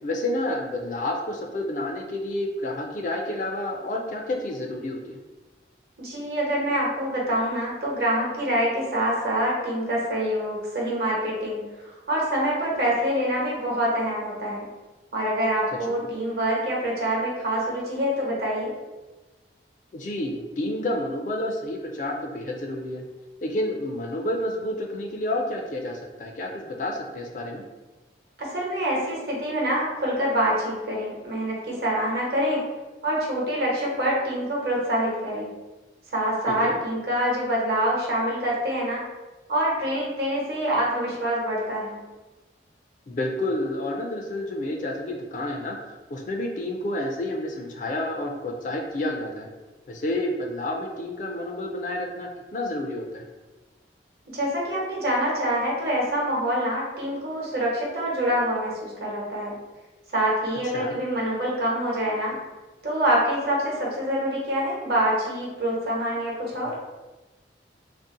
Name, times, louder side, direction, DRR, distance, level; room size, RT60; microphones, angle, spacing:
voice 1, 0.0-5.2 15.9-16.0 19.9-23.0 23.4-27.6 36.5-36.8 43.1-45.8 46.1-49.5 49.9-53.3 60.7-61.0, left 1 dB, 45° left, 1 dB, 0.4 m, -30 dB
voice 2, 6.0-14.7 15.1-18.7 28.4-32.6 33.0-35.5 36.1-39.0 39.5-42.0 54.3-59.5 60.1-62.4 62.8-66.7, right 1 dB, 60° right, -4 dB, 0.9 m, -26 dB
2.6 x 2.1 x 3.7 m, 1.2 s
head